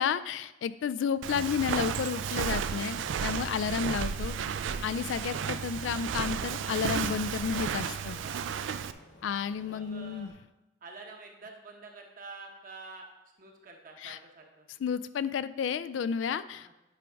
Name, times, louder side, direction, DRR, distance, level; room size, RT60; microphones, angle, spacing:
voice 1, 0.0-4.4 4.8-8.2 9.2-10.3 14.0-14.2 14.8-16.7, left 7 dB, 80° left, 14 dB, 0.3 m, -31 dB
Walk footsteps, 1.2-8.9, right 7 dB, 80° right, 0.3 m, -33 dB
voice 2, 1.6-2.0 7.8-9.1 9.6-10.3 10.8-13.1 13.4-14.7 16.6-16.7, right 3 dB, 45° right, 2 dB, 1.1 m, -48 dB
Aircraft, 4.3-10.3, left 1 dB, 60° left, 1.4 m, -56 dB
9.0 x 3.5 x 5.1 m, 0.96 s
head